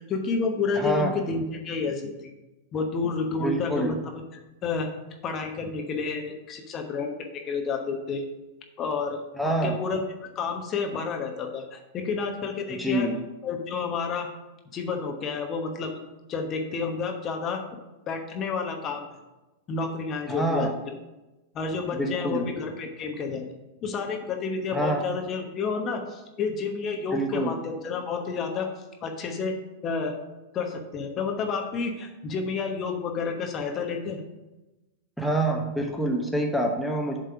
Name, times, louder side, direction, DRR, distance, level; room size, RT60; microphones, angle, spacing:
voice 1, 0.0-2.3 2.7-4.2 4.6-4.9 5.2-8.2 8.8-10.0 10.3-13.1 13.4-14.3 14.7-15.9 16.3-17.8 18.1-19.1 19.7-20.9 21.5-23.5 23.8-28.7 29.0-29.5 29.8-30.2 30.5-34.2, left 4 dB, 35° left, 3 dB, 1.0 m, -30 dB
voice 2, 0.7-1.1 3.4-3.9 9.4-9.8 12.8-13.2 20.3-20.7 21.9-22.5 24.7-25.0 27.1-27.5 35.2-37.2, right 1 dB, ahead, 0 dB, 0.9 m, -26 dB
7.6 x 3.4 x 5.7 m, 1.0 s
hypercardioid pair, 105°, 0 cm